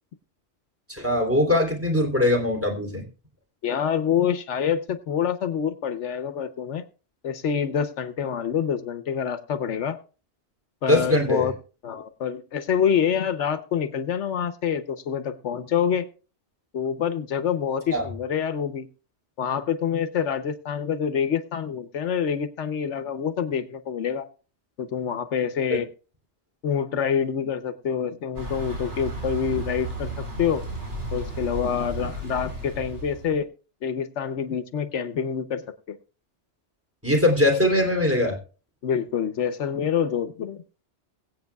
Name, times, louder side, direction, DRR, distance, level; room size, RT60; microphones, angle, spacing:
voice 1, 0.9-3.0 10.9-11.5 17.9-18.0 25.7-25.8 37.0-38.4, left 1 dB, 10° right, 2 dB, 3.1 m, -21 dB
voice 2, 3.6-6.8 7.2-10.0 10.8-11.5 11.8-16.1 16.7-18.9 19.4-24.2 24.8-25.9 26.6-30.6 31.1-33.5 33.8-35.6 35.9-36.0 38.8-40.6, left 8 dB, 80° left, 9 dB, 1.2 m, -26 dB
Thunder / Bicycle, 28.4-33.4, right 2 dB, 80° right, 4.3 m, -33 dB
22.5 x 8.6 x 2.3 m, 0.35 s
omnidirectional pair, 1.2 m